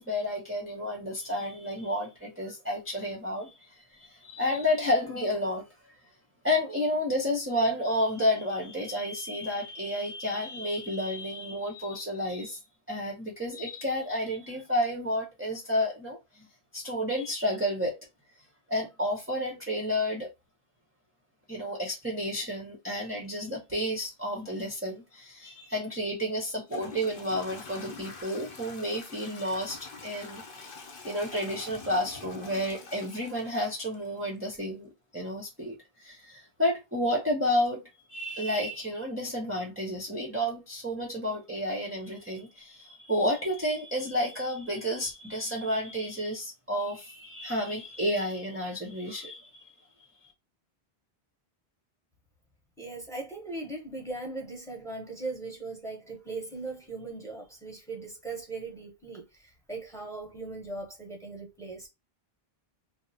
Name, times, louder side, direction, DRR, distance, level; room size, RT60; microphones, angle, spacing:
voice 1, 0.0-5.7 6.4-12.6 12.9-16.5 16.7-18.0 18.7-20.3 21.5-49.7 50.2-50.3, left 1 dB, 15° right, 0.5 m, -31 dB
Toilet flush / Trickle dribble, 25.8-25.9 26.6-34.4, left 4 dB, 60° left, 0.9 m, -45 dB
voice 2, 52.8-61.9, right 3 dB, 5° left, 0.9 m, -39 dB
2.9 x 2.0 x 2.6 m
omnidirectional pair, 1.0 m